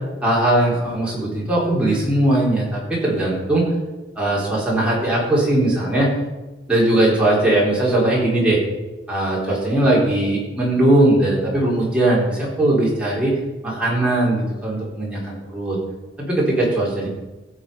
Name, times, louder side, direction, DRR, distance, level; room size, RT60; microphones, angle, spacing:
voice 1, 0.2-3.6 4.2-6.1 6.7-8.6 9.1-13.3 13.6-15.8 16.2-17.1, right 1 dB, 5° right, -6 dB, 3.8 m, -19 dB
16.0 x 6.5 x 5.5 m, 1.1 s
head